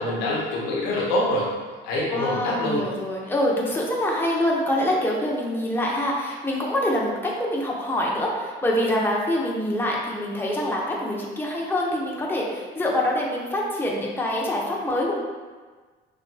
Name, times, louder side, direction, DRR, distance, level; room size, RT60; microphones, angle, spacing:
voice 1, 0.0-1.5 1.8-2.8, left 1 dB, 75° left, -5 dB, 0.9 m, -25 dB
voice 2, 2.1-15.2, left 1 dB, 5° left, -3 dB, 0.9 m, -25 dB
6.1 x 2.5 x 2.3 m, 1.4 s
hypercardioid pair, 50°, 29 cm